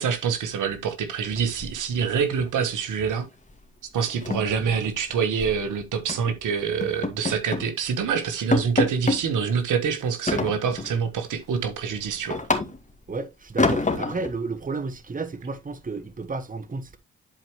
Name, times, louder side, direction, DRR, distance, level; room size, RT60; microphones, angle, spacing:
voice 1, 0.0-3.3 3.9-12.4, right 6 dB, 65° right, 1.4 m, -26 dB
sound 1, 1.3-2.2 2.4-2.7 3.0-3.2 3.5-3.6 4.0-5.6 6.1-6.3 6.8-7.7 8.1-8.2 8.5-9.2 10.3-11.0 11.4-13.0 13.6-14.3, left 3 dB, 20° left, 2.1 m, -27 dB
voice 2, 13.1-17.0, right 3 dB, 25° right, 1.2 m, -32 dB
11.5 x 4.5 x 3.1 m
supercardioid pair, 50°, 33 cm